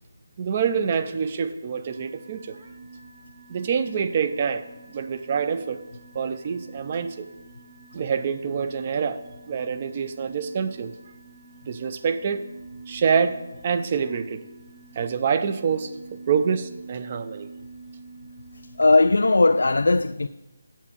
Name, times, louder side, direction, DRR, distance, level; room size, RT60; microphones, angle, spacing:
voice 1, 0.4-2.6 3.5-4.6 4.9-5.8 6.1-7.3 7.9-10.9 11.6-12.5 12.9-14.4 15.0-15.9 16.3-17.5, right 6 dB, 25° right, 0.4 m, -26 dB
sound 1, 1.9-19.7, right 4 dB, 50° right, 1.0 m, -47 dB
voice 2, 18.8-20.3, left 3 dB, 90° left, 0.3 m, -18 dB
7.3 x 7.3 x 7.1 m
hypercardioid pair, 175°, 0 cm